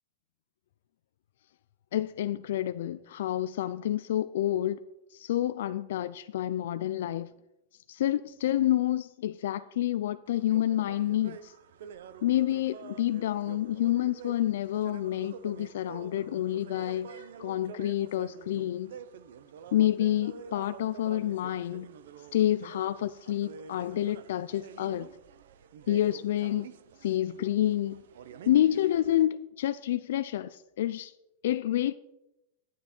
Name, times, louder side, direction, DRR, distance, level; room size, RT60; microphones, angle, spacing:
voice 1, 1.9-4.8 5.1-7.3 7.9-11.5 12.2-18.9 19.7-21.9 22.3-25.1 25.9-26.7 27.0-28.0 28.5-31.1 31.4-31.9, left 12 dB, 70° left, 0.4 m, -28 dB
sound 1, 10.3-29.2, right 7 dB, 75° right, 0.7 m, -48 dB
9.5 x 8.8 x 4.4 m
supercardioid pair, 165°, 0 cm